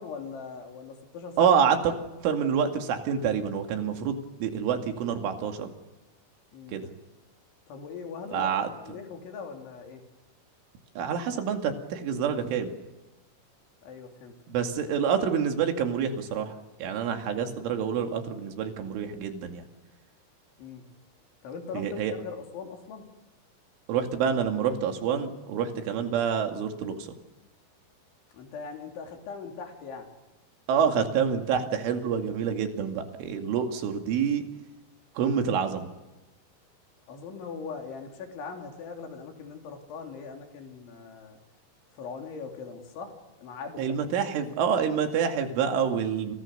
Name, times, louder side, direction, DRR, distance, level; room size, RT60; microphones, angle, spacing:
voice 1, 0.0-1.5 6.5-6.8 7.7-8.5 8.8-10.0 13.8-14.3 20.6-20.9 21.4-23.1 28.3-30.1 34.3-34.4 37.1-41.4 41.9-43.1 43.4-43.9, left 5 dB, 75° left, 3 dB, 5.7 m, -40 dB
voice 2, 1.4-1.9 2.2-4.1 4.4-5.7 6.7-6.9 8.3-8.7 11.0-12.7 14.5-19.6 21.7-22.1 23.9-27.1 30.7-34.4 35.2-35.9 43.8-46.4, right 7 dB, 90° right, 5 dB, 4.9 m, -27 dB
29.5 x 28.0 x 6.8 m, 1.0 s
omnidirectional pair, 5.4 m